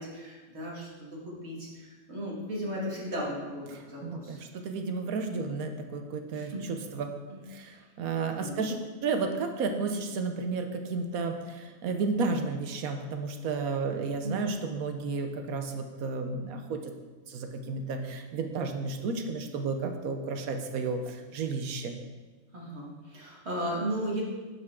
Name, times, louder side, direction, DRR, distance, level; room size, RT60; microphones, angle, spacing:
voice 1, 0.0-4.4 6.3-6.8 7.3-7.4 8.3-8.6 14.2-14.3 22.5-24.2, equal, 50° right, -4 dB, 2.3 m, -36 dB
voice 2, 4.0-7.1 7.5-16.9 17.3-21.9, right 4 dB, 80° right, 5 dB, 1.2 m, -32 dB
9.4 x 5.7 x 3.7 m, 1.3 s
omnidirectional pair, 1.5 m